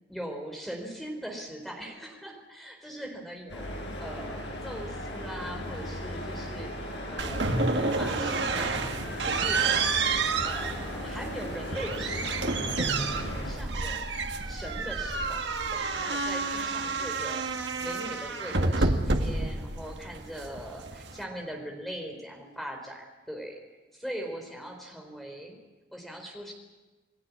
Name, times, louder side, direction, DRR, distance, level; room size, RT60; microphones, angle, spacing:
voice 1, 0.1-10.0 10.4-12.4 12.8-14.1 14.5-15.4 15.7-23.6 23.9-25.5 25.9-26.5, equal, ahead, 2 dB, 4.3 m, -41 dB
sound 1, 3.5-13.5, left 1 dB, 70° left, 7.7 m, -37 dB
sound 2, 7.2-21.2, right 3 dB, 75° right, 1.7 m, -30 dB
28.0 x 18.5 x 8.5 m, 1.2 s
head